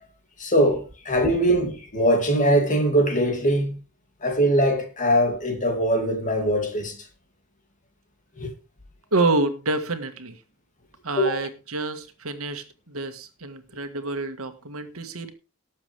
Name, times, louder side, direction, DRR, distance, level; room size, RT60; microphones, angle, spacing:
voice 1, 0.4-3.8 4.2-7.0 8.4-8.5 11.2-11.5, equal, 35° left, 2.7 m, -22 dB
voice 2, 9.1-10.4 11.0-15.3, right 3 dB, 70° right, 1.8 m, -27 dB
19.0 x 7.4 x 3.5 m
head